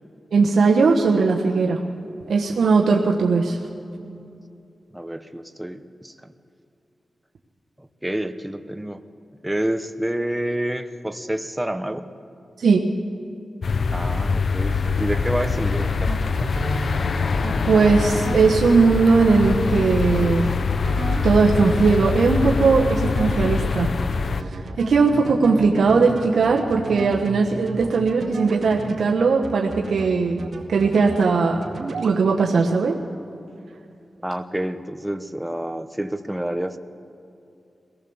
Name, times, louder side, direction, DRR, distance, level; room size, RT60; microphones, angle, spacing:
voice 1, 0.3-1.8 2.3-3.6 12.6-12.8 17.6-20.5 21.2-23.9 24.4-30.4 30.7-31.6 32.0-33.0, right 4 dB, 85° right, 0 dB, 1.2 m, -19 dB
voice 2, 4.9-6.3 7.8-9.0 9.4-12.1 13.9-16.5 34.2-36.8, right 1 dB, 10° right, 8 dB, 1.0 m, -28 dB
sound 1, 13.6-24.4, left 5 dB, 65° left, 0.6 m, -24 dB
sound 2, 14.7-29.1 29.4-30.1 30.4-31.3 31.6-32.2, right 3 dB, 70° right, 2.2 m, -33 dB
23.5 x 18.5 x 7.2 m, 2.6 s
cardioid pair, 70°, 0 cm